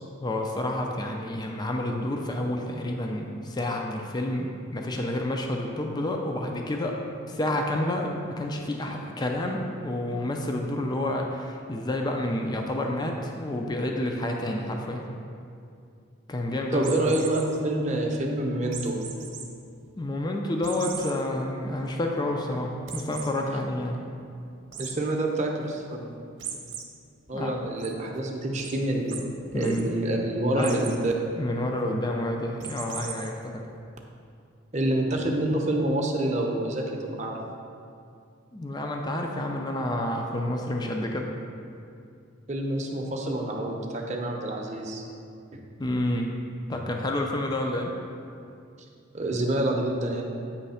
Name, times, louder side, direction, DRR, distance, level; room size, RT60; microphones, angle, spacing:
voice 1, 0.2-7.0 7.3-15.0 16.3-17.1 20.0-24.0 27.3-27.5 29.5-29.9 30.5-30.8 31.4-33.6 38.5-41.3 45.8-46.3 46.7-47.9, left 1 dB, 20° left, 1 dB, 0.4 m, -29 dB
voice 2, 16.7-19.0 24.8-26.1 27.3-29.1 29.5-31.1 34.7-37.4 42.5-45.0 45.5-45.6 49.1-50.2, right 1 dB, 35° right, 0 dB, 0.7 m, -27 dB
sound 1, 16.8-17.5 18.7-19.4 19.9-20.0 20.6-21.1 21.6-21.7 22.0-22.1 22.9-23.3 24.7-24.9 26.4-26.8 27.3-27.9 28.6-28.7 29.1-29.2 29.5-29.8 30.6-31.0 32.6-33.3, right 8 dB, 65° right, 0.8 m, -38 dB
8.3 x 3.3 x 5.5 m, 2.4 s
head